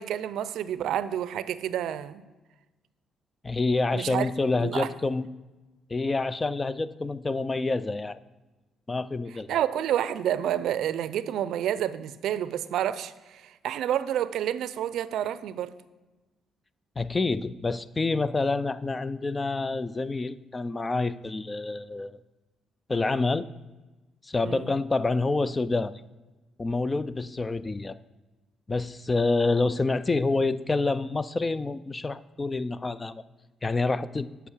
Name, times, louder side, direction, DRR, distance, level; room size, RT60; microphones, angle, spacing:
voice 1, 0.0-2.2 3.9-4.3 4.6-4.9 9.5-15.7 24.4-24.7, right 10 dB, 80° right, 15 dB, 0.5 m, -29 dB
voice 2, 3.4-5.3 5.9-8.2 8.9-9.6 17.0-22.2 22.9-23.5 24.2-26.0 26.6-28.0 28.7-33.2 33.6-34.3, left 3 dB, 25° left, 16 dB, 0.4 m, -27 dB
8.2 x 5.8 x 7.2 m, 1.2 s
cardioid pair, 90°, 0 cm